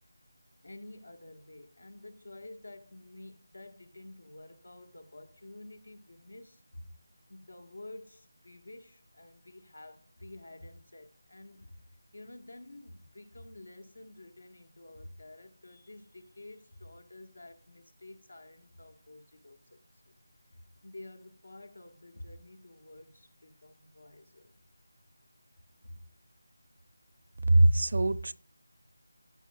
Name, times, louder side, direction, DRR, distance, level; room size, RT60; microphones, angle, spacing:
voice 1, 0.6-6.9 7.3-11.9 12.1-20.1 20.5-24.5 25.8-26.0, left 2 dB, 85° left, 1.7 m, -50 dB
voice 2, 27.5-28.3, right 1 dB, 55° right, 0.5 m, -22 dB
13.5 x 7.6 x 2.4 m
figure-of-eight pair, 170°, 0 cm